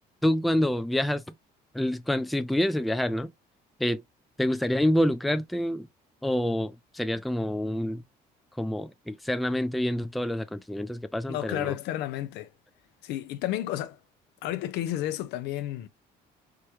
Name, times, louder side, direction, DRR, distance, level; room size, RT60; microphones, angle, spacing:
voice 1, 0.2-1.2 1.7-3.3 3.8-4.0 4.4-5.9 6.2-8.0 8.6-11.7, left 1 dB, ahead, 0.3 m, -27 dB
voice 2, 11.3-12.5 13.0-14.0 14.4-15.9, left 13 dB, 90° left, 0.6 m, -31 dB
4.7 x 2.2 x 2.9 m
cardioid pair, 110°, 17 cm